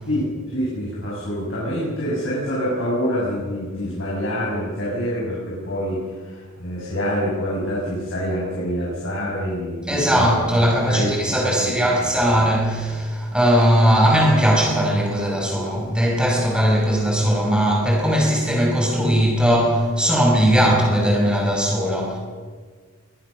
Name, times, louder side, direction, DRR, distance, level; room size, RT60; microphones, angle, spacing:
voice 1, 0.1-10.3 10.9-12.0 20.5-20.6, equal, 60° left, -7 dB, 6.8 m, -26 dB
voice 2, 9.9-22.2, equal, 5° right, -1 dB, 5.5 m, -19 dB
23.0 x 18.5 x 6.5 m, 1.5 s
head